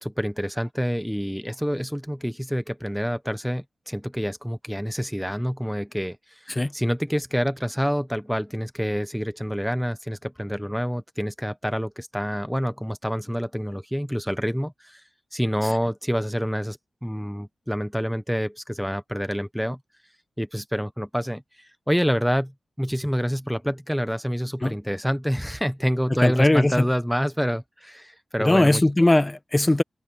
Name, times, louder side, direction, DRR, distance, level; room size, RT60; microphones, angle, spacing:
voice 1, 0.0-15.0 15.3-19.8 20.4-28.8, equal, ahead, 1.0 m, -27 dB
voice 2, 26.2-26.9 28.4-29.8, left 1 dB, 20° left, 1.3 m, -19 dB
wide cardioid pair, 95°, 0 cm